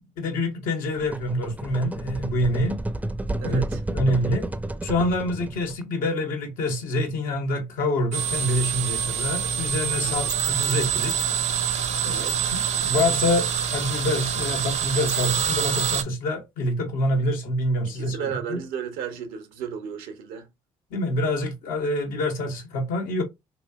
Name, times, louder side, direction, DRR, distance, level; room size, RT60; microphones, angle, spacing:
voice 1, 0.2-2.8 3.4-3.6 3.9-4.5 4.8-11.1 12.1-12.2 12.5-18.6 20.9-23.2, left 1 dB, 80° left, 1.0 m, -26 dB
sound 1, 0.9-5.8, right 1 dB, 10° right, 0.4 m, -31 dB
voice 2, 3.4-3.8 10.0-10.3 12.0-12.5 17.9-20.5, right 8 dB, 85° right, 0.7 m, -34 dB
sound 2, 8.1-16.0, right 8 dB, 55° right, 0.6 m, -25 dB
3.0 x 2.7 x 2.2 m
supercardioid pair, 65°, 14 cm